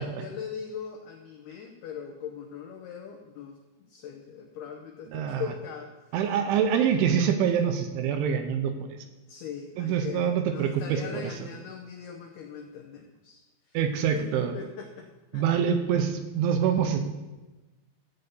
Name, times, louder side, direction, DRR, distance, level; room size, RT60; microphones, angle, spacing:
voice 1, 0.0-5.9 9.3-13.4 13.7-13.8 14.1-15.6, left 7 dB, 90° left, 3 dB, 2.2 m, -40 dB
voice 2, 5.1-5.4 6.1-9.0 9.8-11.2 13.7-14.6 15.3-17.0, right 8 dB, 80° right, 6 dB, 3.0 m, -25 dB
13.5 x 5.5 x 8.2 m, 1.1 s
omnidirectional pair, 5.9 m